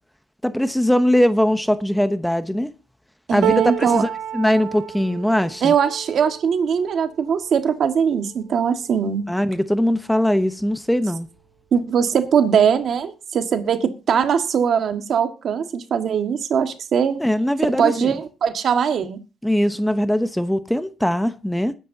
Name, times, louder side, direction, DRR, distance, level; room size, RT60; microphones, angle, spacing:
voice 1, 0.4-2.7 3.3-5.7 9.3-11.3 17.2-18.1 19.4-21.8, equal, 5° left, 0.9 m, -21 dB
voice 2, 3.3-4.1 5.6-9.3 11.7-17.2 17.8-19.2, right 7 dB, 60° right, 1.7 m, -21 dB
sound 1, 3.4-9.6 10.1-10.3 10.6-11.4 12.4-12.5, right 11 dB, 80° right, 1.1 m, -31 dB
21.0 x 10.5 x 2.7 m
cardioid pair, 90°, 0 cm